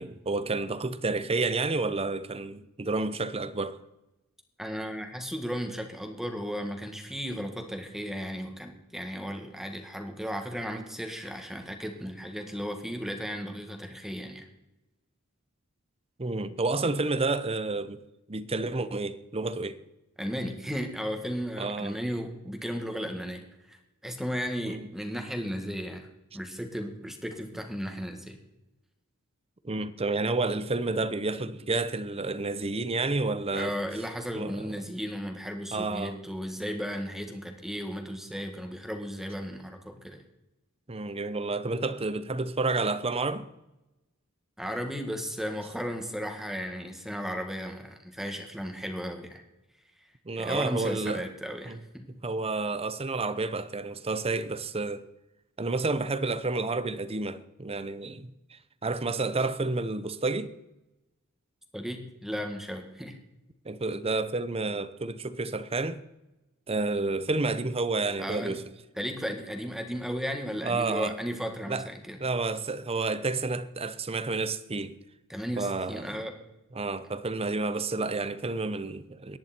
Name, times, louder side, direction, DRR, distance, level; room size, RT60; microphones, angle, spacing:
voice 1, 0.0-3.8 16.2-18.0 18.3-19.8 21.6-22.0 24.6-24.9 29.6-33.8 34.3-34.7 35.7-36.2 40.9-43.5 50.3-51.3 51.7-51.8 52.2-55.1 55.6-60.5 63.6-66.0 66.7-68.6 70.6-71.1 71.7-71.9 72.2-75.0 75.6-76.2 76.7-79.4, right 3 dB, 25° right, 0.8 m, -30 dB
voice 2, 4.6-14.5 20.2-23.4 23.7-26.1 26.3-28.4 33.5-40.2 44.6-49.4 50.4-52.1 61.7-63.2 68.2-68.6 69.0-72.2 75.3-76.4, equal, ahead, 2.0 m, -35 dB
23.5 x 10.5 x 4.5 m
head